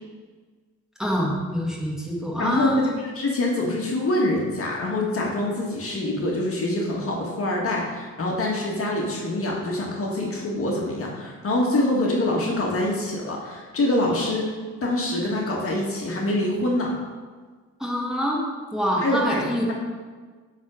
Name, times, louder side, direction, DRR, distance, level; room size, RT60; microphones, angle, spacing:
voice 1, 1.0-2.9 17.8-18.4 18.7-19.7, equal, ahead, -4 dB, 1.9 m, -25 dB
voice 2, 2.4-14.5 14.8-16.9 19.0-19.7, left 1 dB, 45° left, -2 dB, 1.9 m, -25 dB
8.1 x 4.2 x 6.4 m, 1.4 s
cardioid pair, 90°, 30 cm